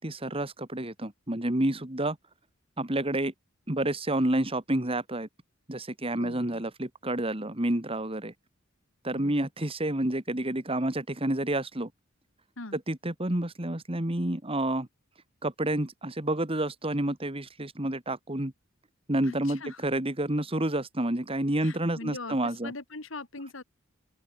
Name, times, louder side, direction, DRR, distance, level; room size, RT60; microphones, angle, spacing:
voice 1, 0.0-2.2 2.8-3.3 3.7-5.3 5.7-8.3 9.0-11.9 12.7-14.9 15.4-18.5 19.1-22.7, right 1 dB, 25° right, 2.1 m, -29 dB
voice 2, 6.2-6.6 9.2-9.5 12.6-12.8 19.2-19.8 21.6-23.6, left 2 dB, 70° left, 2.4 m, -41 dB
open air
head